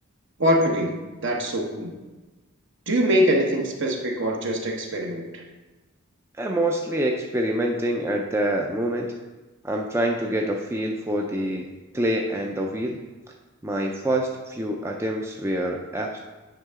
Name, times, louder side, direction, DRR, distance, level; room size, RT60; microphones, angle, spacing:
voice 1, 0.4-1.9 2.9-5.4, equal, 55° right, 1 dB, 1.1 m, -23 dB
voice 2, 6.4-9.1 9.6-11.7 11.9-13.0 13.6-16.2, right 1 dB, 10° right, 1 dB, 0.4 m, -26 dB
9.3 x 5.7 x 3.6 m, 1.2 s
head